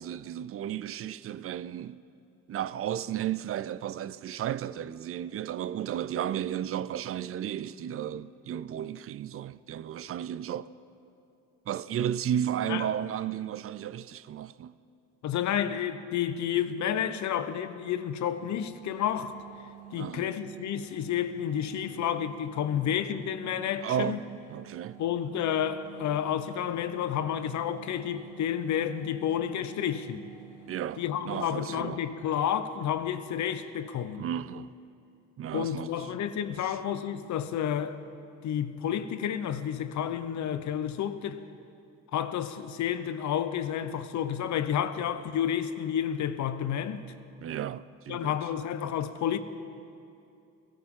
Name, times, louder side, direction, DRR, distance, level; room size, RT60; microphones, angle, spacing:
voice 1, 0.0-2.0 2.5-10.7 11.7-14.8 20.0-20.3 23.8-24.2 24.5-25.0 30.7-32.0 34.1-34.7 35.4-36.1 36.6-36.8 47.4-48.3, right 10 dB, 50° right, 0.4 m, -33 dB
voice 2, 15.2-19.3 19.9-24.2 25.0-30.2 31.0-34.3 35.5-38.0 38.4-41.4 42.1-47.1 48.1-49.4, left 9 dB, 70° left, 0.8 m, -30 dB
sound 1, 18.1-31.7, right 12 dB, 80° right, 1.4 m, -50 dB
17.5 x 16.0 x 3.7 m
cardioid pair, 90°, 30 cm